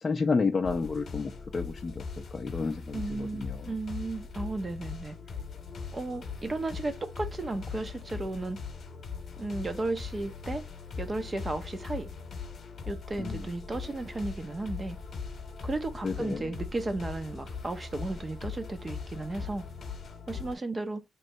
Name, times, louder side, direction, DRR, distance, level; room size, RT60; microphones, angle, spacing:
voice 1, 0.0-2.0 2.3-3.6 13.2-13.4 16.0-16.4, left 4 dB, 30° left, 0.5 m, -30 dB
sound 1, 0.6-20.5, left 5 dB, 45° left, 1.0 m, -40 dB
voice 2, 2.9-5.2 5.9-8.6 9.4-10.7 11.0-12.1 12.9-15.0 15.6-19.6 20.3-21.0, right 2 dB, 25° right, 0.7 m, -34 dB
3.0 x 2.7 x 4.5 m
cardioid pair, 130°, 0 cm